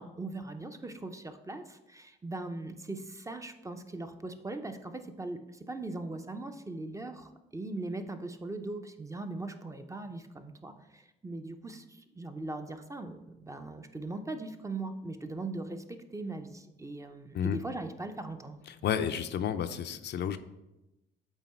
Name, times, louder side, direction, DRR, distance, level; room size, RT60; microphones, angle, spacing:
voice 1, 0.0-18.6, right 2 dB, 15° right, 7 dB, 0.6 m, -40 dB
voice 2, 18.8-20.4, left 8 dB, 60° left, 9 dB, 0.5 m, -31 dB
8.1 x 3.8 x 4.3 m, 0.95 s
cardioid pair, 90°, 20 cm